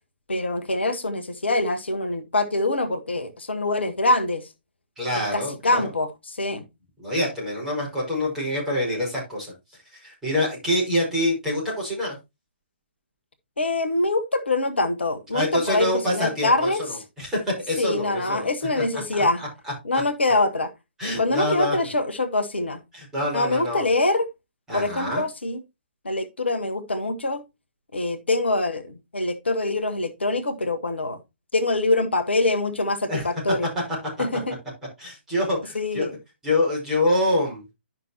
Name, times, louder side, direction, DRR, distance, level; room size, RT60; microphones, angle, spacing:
voice 1, 0.3-4.5 5.3-6.7 13.6-17.0 17.8-19.4 19.8-20.7 21.2-22.8 23.3-24.3 24.7-25.6 26.0-27.4 27.9-31.2 31.5-33.7 34.2-34.6 35.7-36.1, left 2 dB, 70° left, 1.1 m, -24 dB
voice 2, 5.0-5.9 7.0-9.5 9.8-12.2 15.3-16.9 17.2-18.5 19.1-19.5 21.0-21.8 22.9-23.9 24.7-25.2 33.1-33.2 35.0-36.1 36.4-37.6, left 1 dB, 10° right, 5.4 m, -26 dB
11.0 x 5.9 x 2.9 m
figure-of-eight pair, 130°, 6 cm